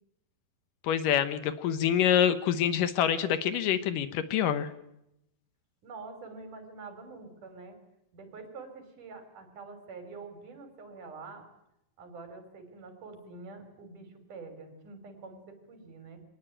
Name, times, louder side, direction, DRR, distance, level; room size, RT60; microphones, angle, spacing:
voice 1, 0.8-4.7, left 9 dB, 75° left, 12 dB, 2.6 m, -26 dB
voice 2, 5.8-7.8 8.1-11.5 12.0-16.2, right 4 dB, 65° right, 7 dB, 5.1 m, -46 dB
23.5 x 19.0 x 8.9 m, 0.84 s
omnidirectional pair, 4.0 m